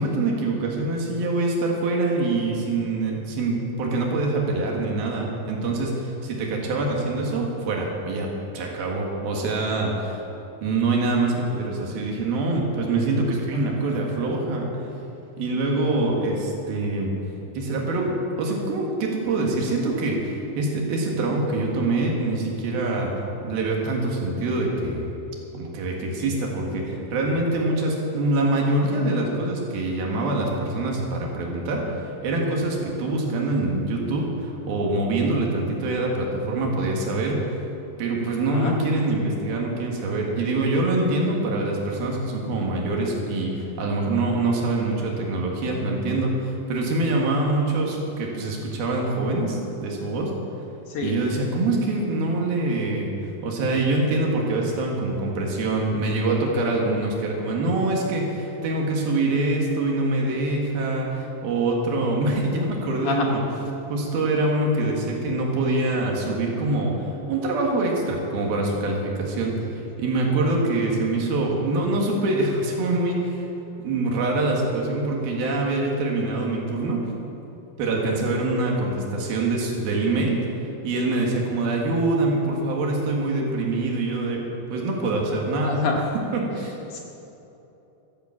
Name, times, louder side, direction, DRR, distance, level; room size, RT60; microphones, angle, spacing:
voice 1, 0.0-10.2 10.6-14.8 15.4-17.1 17.5-23.1 23.4-25.1 25.5-31.9 32.2-37.4 38.0-50.3 51.0-53.1 53.4-63.4 63.9-73.5 73.8-77.1 77.8-80.4 80.8-84.4 84.7-85.8 86.1-86.7, right 2 dB, 75° right, -1 dB, 3.6 m, -24 dB
voice 2, 85.6-86.0 86.9-87.0, left 5 dB, 65° left, 0 dB, 2.2 m, -26 dB
13.5 x 10.0 x 7.4 m, 3.0 s
omnidirectional pair, 4.4 m